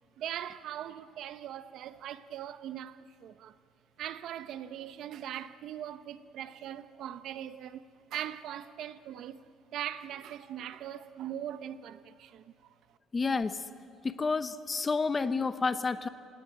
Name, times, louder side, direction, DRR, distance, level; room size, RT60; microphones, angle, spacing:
voice 1, 0.2-3.5 4.0-7.8 8.1-9.4 9.7-12.4, right 11 dB, 60° right, 0.9 m, -40 dB
voice 2, 13.1-13.6 14.0-16.1, left 4 dB, 20° left, 0.8 m, -30 dB
28.0 x 18.0 x 9.2 m
cardioid pair, 160°, 0 cm